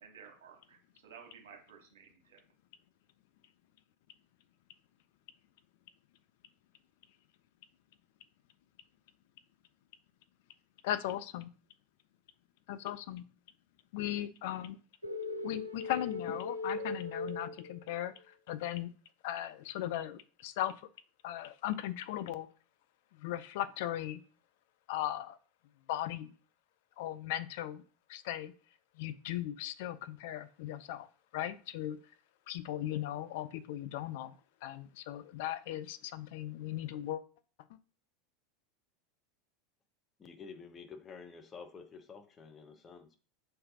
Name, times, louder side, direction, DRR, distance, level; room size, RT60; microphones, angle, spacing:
voice 1, 0.0-2.4, right 7 dB, 65° right, 1.2 m, -55 dB
voice 2, 10.8-11.5 12.7-13.2 13.9-14.8 15.4-18.9 19.2-20.7 21.2-22.5 23.2-24.2 24.9-25.4 25.9-26.3 27.0-27.8 28.1-28.5 29.0-31.1 31.3-32.0 32.5-34.4 34.6-37.2, left 12 dB, 55° left, 0.3 m, -37 dB
sound 1, 15.0-18.2, left 3 dB, 85° right, 0.4 m, -39 dB
voice 3, 40.2-43.2, left 5 dB, 25° left, 0.7 m, -50 dB
5.5 x 3.3 x 2.7 m
figure-of-eight pair, 80°, 0 cm